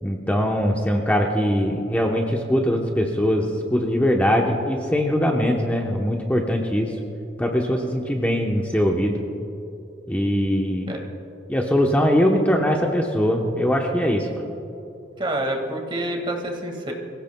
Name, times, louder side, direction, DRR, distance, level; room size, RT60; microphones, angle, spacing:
voice 1, 0.0-6.9 7.4-9.2 10.1-11.0 11.5-14.3, equal, 10° left, 0 dB, 0.9 m, -21 dB
voice 2, 15.2-16.9, right 1 dB, 30° right, 2 dB, 1.9 m, -27 dB
24.5 x 16.5 x 2.3 m, 2.9 s
head